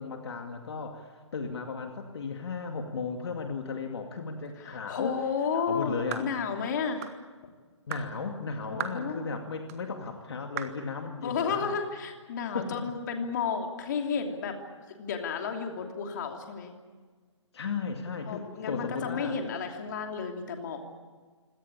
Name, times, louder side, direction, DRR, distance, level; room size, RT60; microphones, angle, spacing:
voice 1, 0.0-5.2 5.5-6.3 7.9-11.7 12.5-12.8 17.5-19.4, left 5 dB, 55° left, 4 dB, 2.3 m, -35 dB
voice 2, 4.6-7.1 8.7-9.3 11.2-14.6 15.0-16.7 18.3-20.8, left 6 dB, 35° left, 3 dB, 2.9 m, -32 dB
sound 1, 6.1-6.3 7.0-7.2 7.9-8.1 8.8-9.0 9.7-9.8 10.6-10.8, right 10 dB, 30° right, 1.5 m, -36 dB
25.0 x 18.0 x 8.7 m, 1.4 s
hypercardioid pair, 160°, 16 cm